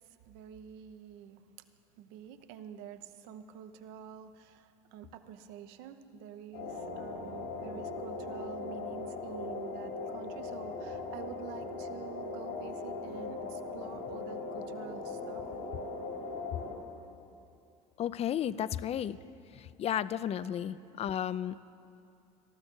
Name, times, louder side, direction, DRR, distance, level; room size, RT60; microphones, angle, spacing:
voice 1, 0.3-1.4 2.0-15.4, right 8 dB, 75° right, 10 dB, 0.9 m, -48 dB
sound 1, 6.5-16.8, left 3 dB, 80° left, 3.4 m, -39 dB
voice 2, 18.0-19.2 19.5-21.6, left 10 dB, 35° left, 16 dB, 0.4 m, -33 dB
18.5 x 13.5 x 4.6 m, 2.6 s
supercardioid pair, 95°, 17 cm